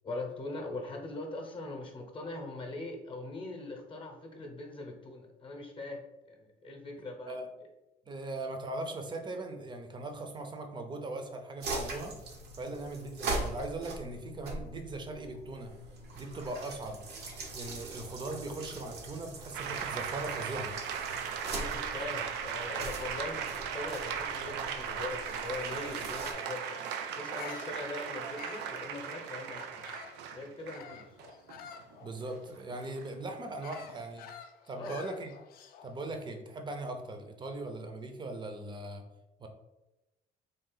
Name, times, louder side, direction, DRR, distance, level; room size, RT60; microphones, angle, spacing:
voice 1, 0.0-7.4 21.3-29.8 30.3-31.0 33.1-33.2 34.7-35.0, left 2 dB, 30° left, 3 dB, 0.8 m, -41 dB
voice 2, 8.1-12.1 12.5-15.7 16.1-17.0 17.5-20.8 32.0-34.3 34.7-35.3 35.8-39.0 39.4-39.5, right 2 dB, 25° right, 5 dB, 0.6 m, -39 dB
sound 1, 11.6-26.3, right 2 dB, 75° right, 0.9 m, -41 dB
sound 2, 19.5-34.0, right 7 dB, 90° right, 0.4 m, -38 dB
Bird vocalization bird call bird song, 27.2-30.3 30.7-36.0, left 8 dB, 60° left, 0.4 m, -50 dB
3.8 x 2.4 x 3.9 m, 0.97 s
cardioid pair, 110°, 17 cm